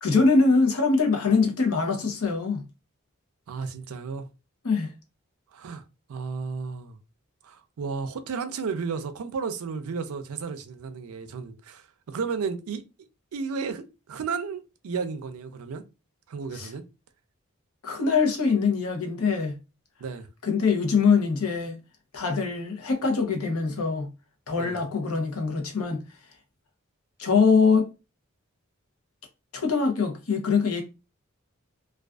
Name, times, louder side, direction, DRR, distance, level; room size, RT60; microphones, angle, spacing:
voice 1, 0.0-2.6 4.6-4.9 16.5-16.7 17.8-19.5 20.4-21.8 22.1-24.1 24.5-26.0 27.2-27.9 29.5-30.8, left 4 dB, 90° left, 0.7 m, -23 dB
voice 2, 3.5-4.3 5.5-5.8 6.1-7.0 7.4-12.8 13.3-15.8 16.3-16.8 20.0-20.3 24.6-24.8, right 5 dB, 85° right, 0.4 m, -33 dB
2.4 x 2.3 x 2.3 m
head